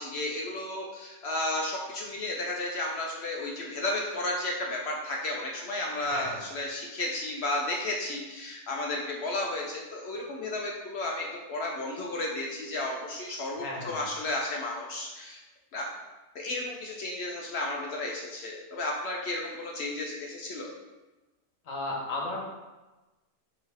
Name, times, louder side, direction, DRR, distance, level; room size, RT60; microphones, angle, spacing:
voice 1, 0.0-15.4 15.7-15.9 16.3-20.7, left 2 dB, 65° left, -1 dB, 0.8 m, -33 dB
voice 2, 6.0-6.4 13.5-14.0 21.6-22.4, left 2 dB, 80° left, -2 dB, 1.4 m, -34 dB
4.1 x 3.1 x 4.0 m, 1.1 s
omnidirectional pair, 1.4 m